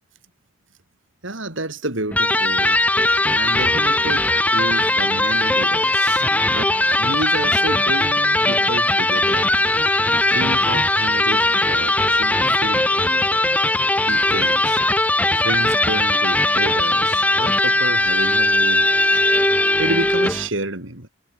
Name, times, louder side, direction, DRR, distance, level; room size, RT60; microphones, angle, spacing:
voice 1, 1.2-2.8 3.3-9.5 9.9-10.0 10.3-13.2 13.7-13.8 14.1-14.8 15.3-21.1, right 1 dB, 70° right, 5.2 m, -30 dB
Electric guitar, 2.1-20.5, left 2 dB, 5° left, 0.9 m, -19 dB
head